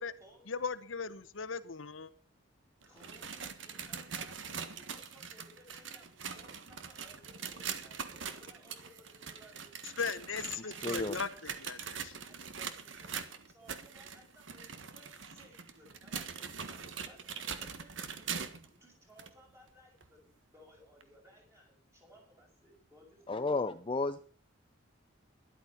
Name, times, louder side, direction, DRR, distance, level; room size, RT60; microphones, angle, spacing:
voice 1, 0.5-2.1 10.0-11.3 11.6-12.1, left 5 dB, 85° left, 12 dB, 1.0 m, -38 dB
voice 2, 2.8-9.7 10.6-11.5 12.2-23.4, equal, 15° right, 0 dB, 6.1 m, -61 dB
sound 1, 2.8-18.7 19.2-19.3 20.0-20.1 21.0-21.1, right 6 dB, 75° right, 1.5 m, -42 dB
voice 3, 10.8-11.1 23.3-24.2, left 3 dB, 25° left, 9 dB, 0.5 m, -32 dB
13.0 x 11.5 x 5.8 m, 0.40 s
head